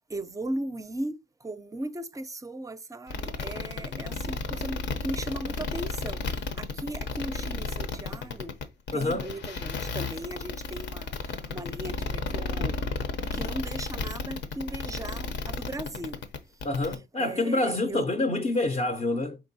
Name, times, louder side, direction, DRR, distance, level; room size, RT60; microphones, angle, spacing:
voice 1, 0.1-8.6 8.9-12.8 13.3-16.2 17.2-18.0, right 1 dB, 15° right, 0.5 m, -37 dB
sound 1, 3.1-17.0, left 4 dB, 65° left, 0.7 m, -32 dB
voice 2, 8.9-9.3 16.6-19.4, left 2 dB, 30° left, 0.6 m, -27 dB
4.4 x 3.7 x 2.7 m
cardioid pair, 90°, 20 cm